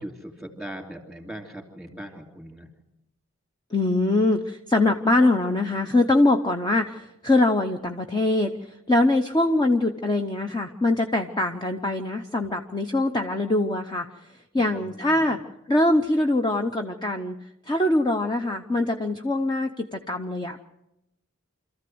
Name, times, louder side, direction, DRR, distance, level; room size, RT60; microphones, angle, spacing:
voice 1, 0.0-2.7 14.5-15.4, right 1 dB, ahead, 4 dB, 2.9 m, -40 dB
voice 2, 3.7-14.1 14.5-15.4 15.7-17.3 17.7-20.6, left 2 dB, 20° left, 5 dB, 0.8 m, -23 dB
26.5 x 14.5 x 7.8 m, 0.92 s
head